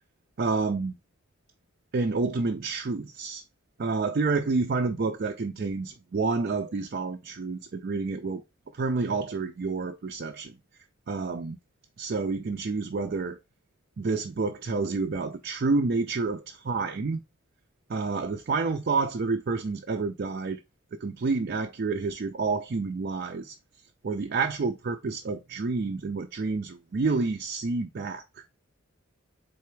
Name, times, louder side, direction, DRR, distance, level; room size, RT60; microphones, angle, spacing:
voice 1, 0.4-1.0 1.9-3.4 3.8-8.4 8.7-10.5 11.1-11.6 12.0-13.4 14.0-17.2 17.9-20.6 21.0-23.5 24.0-28.2, right 4 dB, 50° right, 0.5 m, -29 dB
4.1 x 3.3 x 3.0 m
head